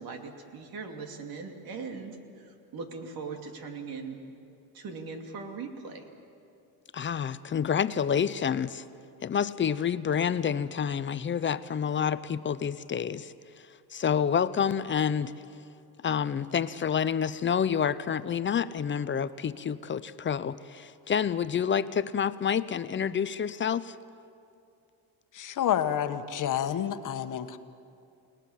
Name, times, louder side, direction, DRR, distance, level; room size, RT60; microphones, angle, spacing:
voice 1, 0.0-4.2 4.7-6.0, right 4 dB, 60° right, 4 dB, 2.9 m, -40 dB
voice 2, 6.9-8.8 9.2-13.3 13.9-15.3 16.0-23.9, left 7 dB, 30° left, 15 dB, 0.6 m, -28 dB
voice 3, 25.3-27.6, left 10 dB, 50° left, 10 dB, 1.3 m, -29 dB
30.0 x 19.5 x 7.4 m, 2.6 s
cardioid pair, 115°, 40 cm